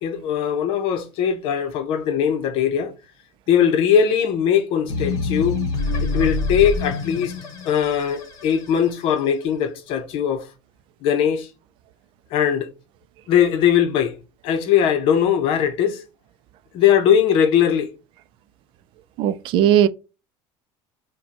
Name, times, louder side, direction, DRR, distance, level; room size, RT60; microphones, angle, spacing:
voice 1, 0.0-2.9 3.5-5.6 6.1-7.3 7.6-10.4 11.0-11.5 12.3-12.7 13.3-14.1 14.4-16.0 16.7-17.9, left 8 dB, 60° left, 0.8 m, -20 dB
sound 1, 4.9-9.2, left 3 dB, 35° left, 1.4 m, -26 dB
voice 2, 19.2-19.9, right 10 dB, 55° right, 0.4 m, -17 dB
5.2 x 2.2 x 2.9 m
cardioid pair, 155°, 11 cm